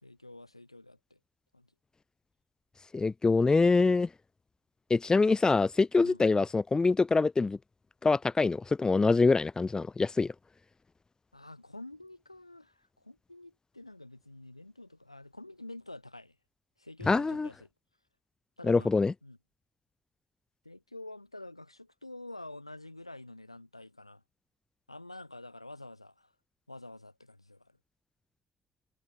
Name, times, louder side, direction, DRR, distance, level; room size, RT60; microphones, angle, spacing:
voice 1, 0.0-1.2 1.5-1.7 6.0-6.2 11.3-16.4 16.8-17.7 18.6-18.9 19.2-19.4 20.6-24.2 24.9-26.3 26.7-27.8, left 2 dB, 90° left, 4.6 m, -48 dB
voice 2, 2.9-4.1 4.9-7.6 8.0-10.3 17.1-17.5 18.6-19.1, left 3 dB, 25° left, 1.2 m, -25 dB
figure-of-eight pair, 45°, 3 cm